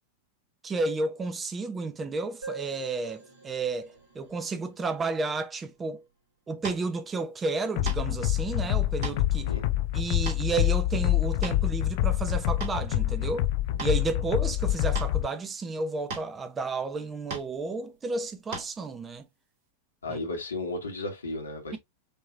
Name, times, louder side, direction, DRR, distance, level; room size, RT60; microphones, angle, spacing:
voice 1, 0.6-6.0 6.5-9.5 9.9-13.5 13.8-19.3 20.1-20.2, right 3 dB, 20° right, 0.6 m, -32 dB
sound 1, 2.4-6.0, right 3 dB, 70° right, 2.2 m, -46 dB
sound 2, 6.6-6.8 7.9-8.2 8.8-9.2 9.7-9.8 10.3-10.4 11.2-11.8 12.3-12.8 13.8-14.0 14.9-15.1 16.1-16.3 17.3-17.5 18.5-18.7, right 3 dB, 50° right, 2.5 m, -37 dB
sound 3, 7.8-15.3, left 14 dB, 50° left, 0.3 m, -26 dB
voice 2, 9.3-9.7 20.0-21.8, left 2 dB, 75° left, 1.5 m, -34 dB
5.3 x 2.9 x 2.5 m
figure-of-eight pair, 90°, 0 cm